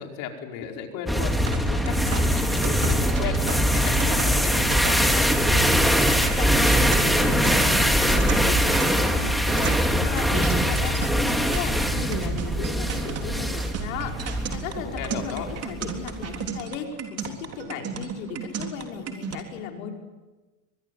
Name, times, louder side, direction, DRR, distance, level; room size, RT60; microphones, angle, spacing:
voice 1, 0.0-1.4 1.7-5.3 14.6-15.5, left 7 dB, 50° left, 3 dB, 5.1 m, -35 dB
sound 1, 1.1-16.5, equal, ahead, 2.6 m, -22 dB
sound 2, 1.5-19.4, right 7 dB, 35° right, 3.6 m, -34 dB
voice 2, 6.4-20.0, left 7 dB, 75° left, 3 dB, 5.1 m, -36 dB
24.5 x 20.5 x 9.5 m, 1.2 s
supercardioid pair, 110°, 42 cm